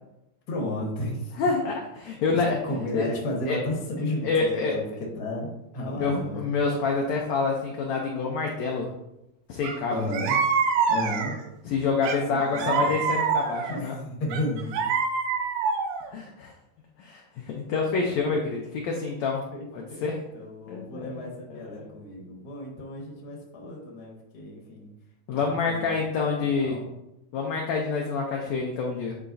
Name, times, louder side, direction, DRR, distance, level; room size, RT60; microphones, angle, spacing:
voice 1, 0.5-1.4 2.3-4.8 5.1-6.5 9.9-10.4 10.9-11.3 12.3-12.9 13.7-14.9 19.5-20.1 20.3-24.9 25.3-25.4 25.8-25.9 26.6-26.9, left 1 dB, 45° left, -1 dB, 1.4 m, -33 dB
voice 2, 1.4-2.6 2.9-3.1 3.5-3.6 4.2-4.7 6.0-8.9 9.5-9.9 11.6-14.0 16.1-16.5 17.0-19.4 19.7-20.2 20.7-21.9 25.3-26.8 27.3-29.1, left 4 dB, 80° left, 0 dB, 1.6 m, -27 dB
sound 1, 9.6-9.8 10.1-11.5 12.0-13.8 14.3-16.1, right 5 dB, 85° right, 2.3 m, -26 dB
10.0 x 4.1 x 2.6 m, 0.89 s
omnidirectional pair, 3.9 m